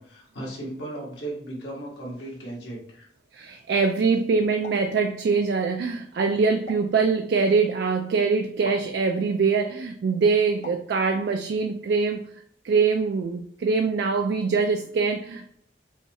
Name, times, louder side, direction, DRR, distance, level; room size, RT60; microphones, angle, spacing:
voice 1, 0.0-3.1, right 1 dB, 75° left, -4 dB, 1.6 m, -36 dB
voice 2, 3.3-12.2 12.6-15.5, right 4 dB, 65° right, 5 dB, 0.3 m, -23 dB
sound 1, 4.6-4.9 6.7-7.0 8.6-8.9 10.6-10.9, left 3 dB, 45° left, 0.5 m, -42 dB
5.4 x 2.3 x 3.1 m, 0.66 s
head